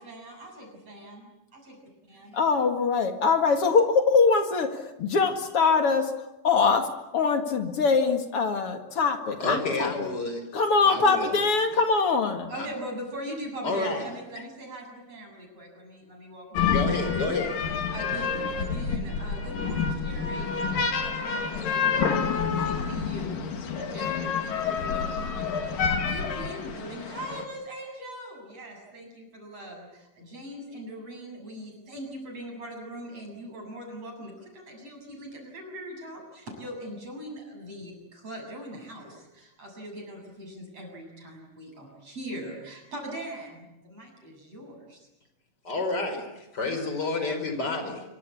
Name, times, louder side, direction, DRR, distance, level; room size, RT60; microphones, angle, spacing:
voice 1, 0.0-1.8 2.1-2.3 12.5-17.5 17.9-45.1, right 1 dB, 45° right, 2 dB, 8.6 m, -41 dB
voice 2, 2.3-6.1 6.4-6.9 7.1-10.1 10.5-12.5, left 4 dB, 45° left, 6 dB, 2.6 m, -23 dB
voice 3, 9.4-10.4 10.9-11.4 12.6-12.7 13.6-14.1 16.7-17.5 45.6-48.0, left 3 dB, 25° left, 6 dB, 5.3 m, -29 dB
sound 1, 16.6-27.4, left 6 dB, 75° left, 4.0 m, -28 dB
26.5 x 24.0 x 8.5 m, 0.92 s
omnidirectional pair, 4.0 m